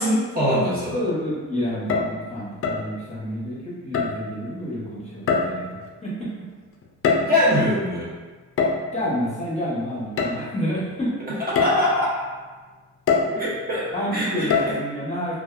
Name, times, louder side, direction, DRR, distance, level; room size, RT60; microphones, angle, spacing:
voice 1, 0.0-1.0 7.3-8.1 11.3-12.2 13.3-14.7, left 1 dB, 30° right, -8 dB, 0.9 m, -23 dB
voice 2, 0.9-6.3 8.9-11.1 13.9-15.4, equal, 20° left, -8 dB, 1.0 m, -29 dB
sound 1, 1.7-2.2 2.6-2.9 3.9-4.3 5.3-5.8 6.8-7.5 8.6-8.9 10.2-10.3 10.9-11.0 11.6-11.9 13.1-13.4 14.5-14.7, left 5 dB, 45° left, 0.4 m, -23 dB
2.7 x 2.3 x 2.4 m, 1.3 s
cardioid pair, 90°, 30 cm